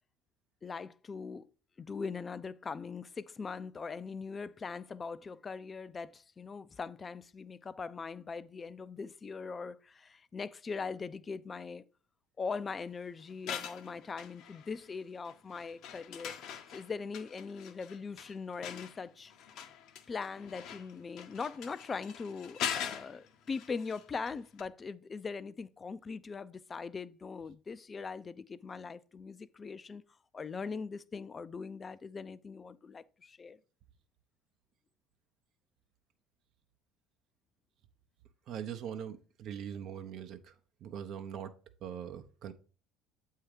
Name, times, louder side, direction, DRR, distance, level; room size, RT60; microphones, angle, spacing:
voice 1, 0.6-1.5 1.8-11.8 12.4-16.4 16.7-19.3 20.1-30.0 30.3-33.6, left 5 dB, 30° left, 0.4 m, -41 dB
sound 1, 13.3-14.9 15.2-24.3 24.6-24.7, left 9 dB, 65° left, 0.7 m, -43 dB
voice 2, 38.5-40.5 40.8-41.5 41.8-42.5, right 8 dB, 60° right, 0.7 m, -41 dB
7.8 x 2.8 x 5.0 m
hypercardioid pair, 75°, 0 cm